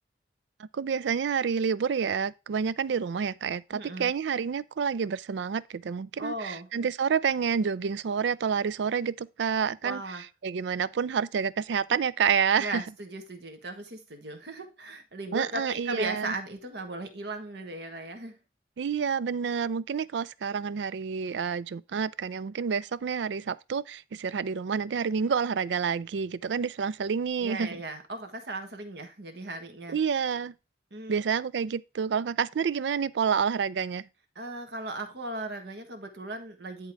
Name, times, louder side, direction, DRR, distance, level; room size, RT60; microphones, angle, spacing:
voice 1, 0.6-10.0 10.4-12.8 15.3-16.3 18.8-27.7 29.9-30.5 31.1-34.1, right 6 dB, 85° right, 0.4 m, -28 dB
voice 2, 3.7-4.1 6.2-6.7 9.8-10.2 12.6-18.4 27.4-30.0 30.9-31.2 34.3-36.9, right 2 dB, 70° right, 1.5 m, -37 dB
10.5 x 3.8 x 4.6 m
head